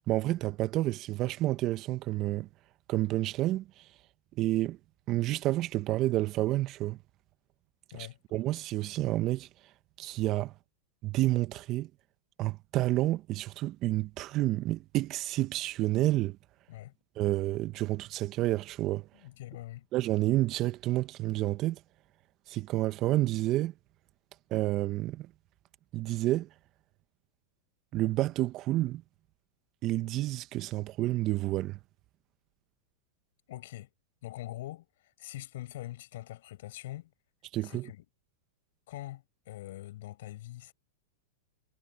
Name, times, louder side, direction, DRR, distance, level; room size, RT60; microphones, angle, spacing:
voice 1, 0.1-2.5 2.9-3.8 4.4-4.8 5.1-7.0 8.3-9.5 10.0-10.5 11.0-11.9 12.4-16.4 17.2-19.1 19.9-21.8 22.5-23.7 24.5-25.3 25.9-26.5 27.9-29.0 29.8-31.8 37.5-37.9, right 16 dB, 40° right, 1.5 m, -29 dB
voice 2, 19.1-19.9 33.5-33.9 34.2-34.9 35.2-37.1 37.6-38.0 38.9-40.7, left 15 dB, 65° left, 7.7 m, -43 dB
hypercardioid pair, 115°, 0 cm